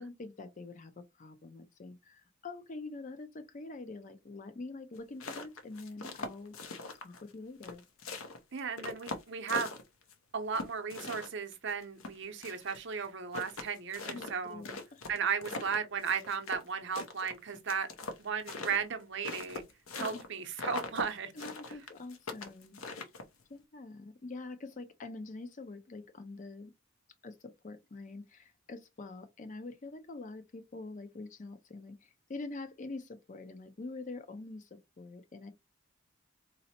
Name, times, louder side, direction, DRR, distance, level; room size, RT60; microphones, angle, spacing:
voice 1, 0.0-7.8 14.0-15.1 20.0-20.2 21.3-23.1 23.5-26.7 27.2-35.5, left 3 dB, 35° left, 0.4 m, -45 dB
sound 1, 5.0-7.3 7.6-10.1 10.5-12.8 13.0-13.1 13.3-16.7 16.9-20.3 20.5-21.1 21.4-23.4, left 3 dB, 75° left, 0.6 m, -41 dB
voice 2, 8.5-9.7 10.3-14.6 15.1-17.9 18.2-19.6 19.9-21.3, right 6 dB, 60° right, 0.6 m, -35 dB
3.9 x 2.0 x 2.8 m
head